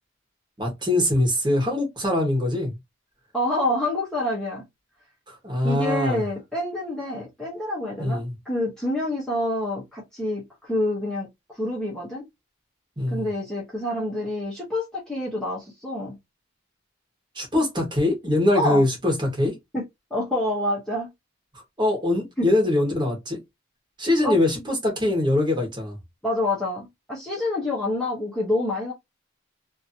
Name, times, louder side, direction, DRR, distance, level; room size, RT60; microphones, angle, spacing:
voice 1, 0.6-2.8 5.3-6.2 8.0-8.3 13.0-13.3 17.3-19.5 21.8-23.4 24.0-26.0, left 1 dB, 20° right, 1.4 m, -23 dB
voice 2, 3.3-4.6 5.6-12.2 13.1-16.1 18.5-18.8 19.7-19.8 20.1-21.1 22.4-22.5 24.2-24.4 26.2-28.9, left 1 dB, 5° left, 1.1 m, -27 dB
3.0 x 2.7 x 2.7 m
head